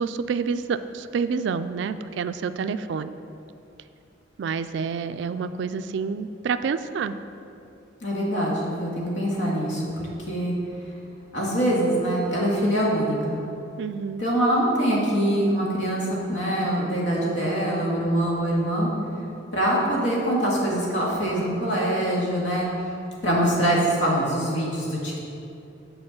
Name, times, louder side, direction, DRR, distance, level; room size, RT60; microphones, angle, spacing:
voice 1, 0.0-3.1 4.4-7.2 13.8-14.2, right 5 dB, 65° right, 12 dB, 0.3 m, -28 dB
voice 2, 8.0-10.6 11.3-13.4 14.2-18.9 19.5-22.7 23.2-25.2, right 1 dB, 75° left, -4 dB, 1.9 m, -24 dB
7.7 x 4.4 x 7.0 m, 2.7 s
head